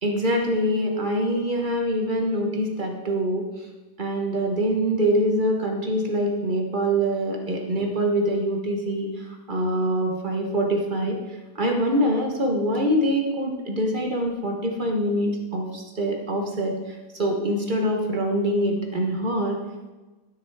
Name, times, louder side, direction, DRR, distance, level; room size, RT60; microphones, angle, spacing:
voice 1, 0.0-3.7 4.0-11.2 11.5-19.6, equal, 35° right, 1 dB, 0.8 m, -24 dB
11.0 x 6.1 x 4.6 m, 1.2 s
omnidirectional pair, 2.3 m